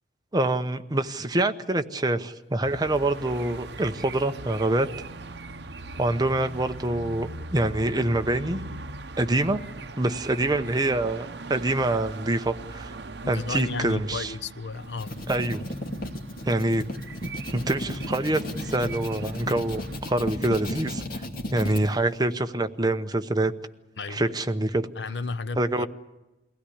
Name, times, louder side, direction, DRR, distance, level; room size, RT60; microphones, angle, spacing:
voice 1, 0.3-4.9 6.0-8.6 9.2-9.6 10.0-12.9 13.3-14.3 15.3-15.6 16.4-16.8 17.5-23.5 24.1-24.9 25.6-25.9, right 2 dB, 20° right, 0.8 m, -26 dB
sound 1, 2.6-20.0, right 3 dB, 65° right, 0.9 m, -40 dB
voice 2, 13.2-15.2 24.0-24.3 25.0-25.9, left 4 dB, 70° left, 0.7 m, -33 dB
sound 2, 14.8-21.8, left 1 dB, 50° left, 2.4 m, -34 dB
23.0 x 16.5 x 9.9 m
head